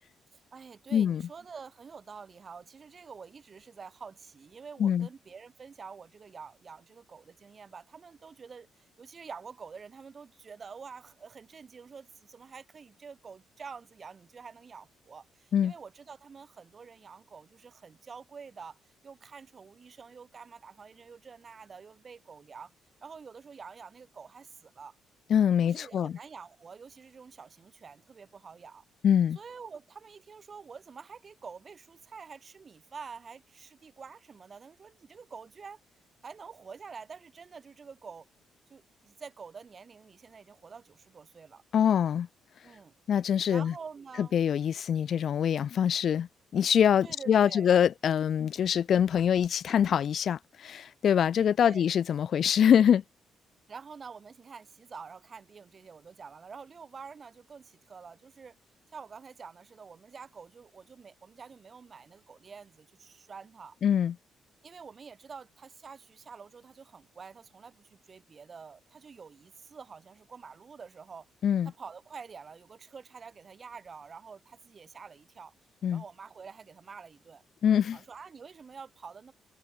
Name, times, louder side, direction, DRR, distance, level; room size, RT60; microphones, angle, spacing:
voice 1, 0.3-22.7 23.0-25.0 25.6-28.8 29.3-35.8 36.2-38.3 38.7-41.6 42.6-42.9 43.5-44.4 47.0-47.7 51.6-51.8 53.7-58.6 58.9-63.8 64.6-71.3 71.6-75.5 75.9-77.4 77.9-79.3, right 5 dB, 40° right, 4.4 m, -47 dB
voice 2, 0.9-1.2 4.8-5.1 15.5-15.7 25.3-26.2 29.0-29.4 41.7-42.3 43.1-43.7 44.2-46.3 46.5-53.0 63.8-64.1 71.4-71.7 75.8-76.0 77.6-78.0, left 8 dB, 60° left, 0.4 m, -24 dB
cardioid pair, 90°, 0 cm